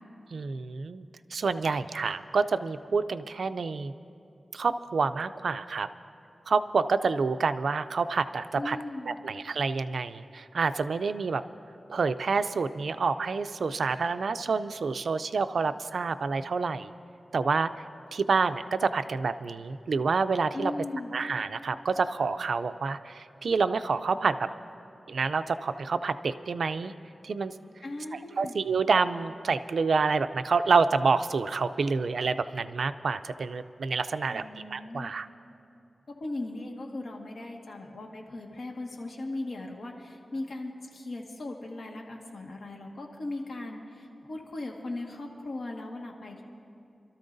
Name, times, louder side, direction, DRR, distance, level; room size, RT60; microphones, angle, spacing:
voice 1, 0.3-3.9 4.5-5.9 6.5-8.8 9.1-11.4 11.9-16.9 17.3-17.8 18.1-20.7 21.1-24.5 25.1-26.9 27.2-27.5 28.4-34.4 34.7-35.3, right 4 dB, 85° right, 12 dB, 0.4 m, -28 dB
voice 2, 8.6-9.3 20.5-21.1 27.8-28.5 34.3-35.1 36.1-46.4, left 2 dB, 80° left, 0 dB, 1.6 m, -38 dB
Telephone, 25.3-25.8 26.3-26.8 27.3-27.8 28.3-28.8 29.3-29.8 30.3-30.8 31.3-31.8 32.3-32.8, right 3 dB, 50° right, 2.3 m, -57 dB
28.0 x 13.5 x 2.6 m, 2.6 s
wide cardioid pair, 100°, 0 cm